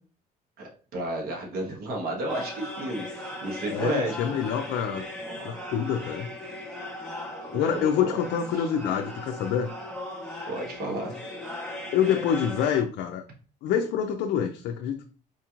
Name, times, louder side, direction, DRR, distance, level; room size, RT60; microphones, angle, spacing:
voice 1, 0.6-4.4 7.7-8.2 8.5-8.7 10.5-11.2, right 1 dB, 65° right, -1 dB, 1.4 m, -32 dB
sound 1, 2.3-12.8, left 1 dB, 5° left, 1.1 m, -38 dB
voice 2, 3.7-5.0 5.4-6.3 7.5-9.7 11.9-13.2 13.6-15.0, left 8 dB, 75° left, 4 dB, 0.4 m, -26 dB
4.4 x 2.9 x 2.4 m, 0.39 s
cardioid pair, 110°, 17 cm